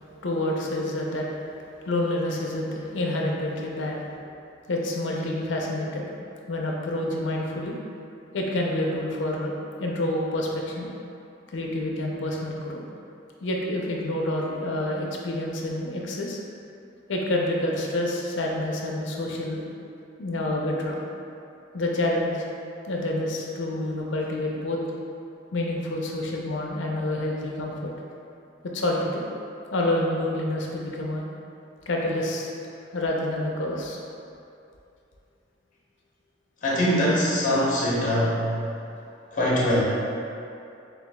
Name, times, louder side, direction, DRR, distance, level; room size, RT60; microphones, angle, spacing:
voice 1, 0.2-1.3 1.8-4.0 4.7-6.1 6.5-7.8 8.3-9.5 9.8-10.9 11.5-12.8 13.4-16.4 17.1-19.6 20.2-21.0 21.7-22.4 22.9-24.8 25.5-27.9 28.7-29.3 29.7-31.3 31.9-32.5 32.9-34.0, left 1 dB, 70° left, -1 dB, 0.5 m, -28 dB
voice 2, 36.6-38.4 39.3-39.8, equal, 45° left, -7 dB, 1.0 m, -22 dB
6.8 x 2.4 x 2.2 m, 2.6 s
head